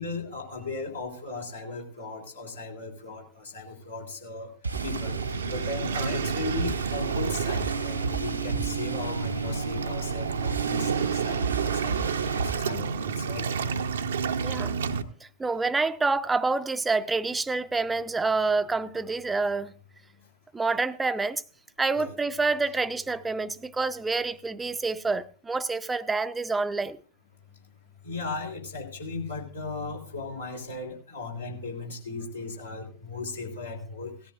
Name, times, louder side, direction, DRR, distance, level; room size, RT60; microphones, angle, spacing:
voice 1, 0.0-4.5 4.8-5.2 5.5-13.5 22.0-22.1 28.0-34.1, left 3 dB, 80° left, 3.6 m, -36 dB
sound 1, 4.6-12.6, right 4 dB, 80° right, 1.3 m, -35 dB
Waves surf, 4.7-15.0, right 6 dB, 65° right, 0.7 m, -30 dB
voice 2, 14.4-14.8 15.2-19.7 20.5-21.4 21.8-27.0, right 3 dB, 10° right, 0.6 m, -27 dB
18.0 x 13.5 x 2.5 m
figure-of-eight pair, 90°, 0 cm